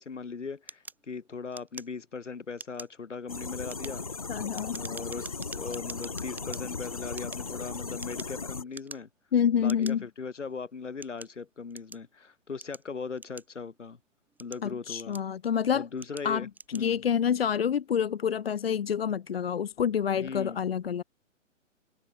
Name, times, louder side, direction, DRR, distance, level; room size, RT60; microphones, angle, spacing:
voice 1, 0.0-4.1 4.7-9.1 9.6-14.0 14.4-15.2 15.7-17.0 20.2-20.6, left 5 dB, 65° left, 4.3 m, -39 dB
sound 1, 0.7-2.2 2.5-3.0 3.5-6.6 7.1-8.4 8.7-9.2 9.7-9.9 10.6-12.1 12.6-13.8 14.2-15.5 16.0-16.3 16.5-16.9, right 3 dB, 5° right, 3.9 m, -45 dB
sound 2, 3.3-8.6, left 4 dB, 30° left, 0.4 m, -37 dB
voice 2, 4.3-4.8 9.3-10.0 14.6-15.9 16.2-16.4 16.7-21.0, left 8 dB, 50° left, 1.0 m, -27 dB
figure-of-eight pair, 130°, 38 cm